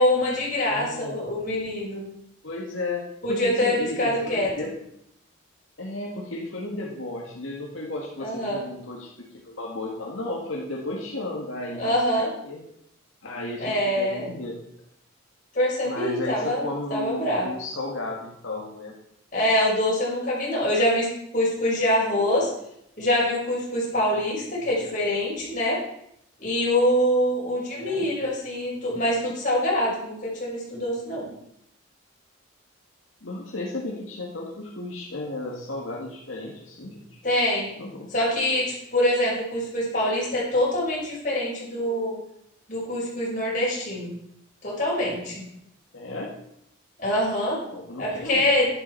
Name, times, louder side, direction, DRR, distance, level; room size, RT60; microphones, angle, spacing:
voice 1, 0.0-2.1 3.2-4.5 8.2-8.6 11.7-12.3 13.6-14.3 15.5-17.5 19.3-21.1 21.3-22.5 23.0-25.8 26.4-31.3 37.2-37.7 38.1-42.2 42.7-44.1 44.6-45.4 47.0-47.6 48.0-48.7, left 1 dB, 40° left, -5 dB, 5.4 m, -24 dB
voice 2, 0.7-1.2 2.4-4.7 5.8-12.6 13.2-14.6 15.8-18.9 27.8-28.1 33.2-37.2 37.8-38.1 45.9-46.3 47.7-48.4, left 2 dB, 75° left, -2 dB, 1.9 m, -34 dB
11.5 x 11.0 x 4.6 m, 0.76 s
head